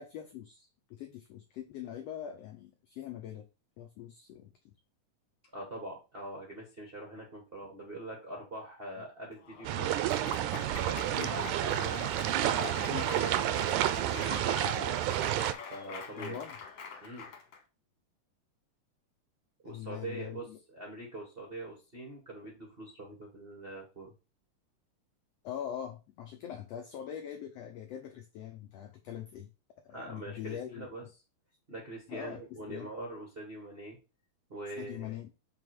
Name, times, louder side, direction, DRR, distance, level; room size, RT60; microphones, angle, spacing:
voice 1, 0.0-3.5 3.8-4.7 11.1-11.3 12.9-13.1 16.1-16.6 19.6-20.6 25.4-29.5 29.8-30.9 32.1-32.9 34.8-35.3, left 10 dB, 85° left, 5 dB, 1.4 m, -42 dB
voice 2, 5.5-9.9 10.5-15.0 15.7-16.4 17.0-17.3 19.6-24.1 29.9-31.0 31.7-34.0 34.5-35.1, right 2 dB, 55° right, -1 dB, 0.6 m, -44 dB
Applause / Crowd, 9.4-17.6, left 5 dB, 60° left, 2.0 m, -43 dB
sound 1, 9.6-15.5, right 13 dB, 80° right, 1.9 m, -30 dB
6.0 x 3.7 x 4.7 m, 0.30 s
omnidirectional pair, 3.7 m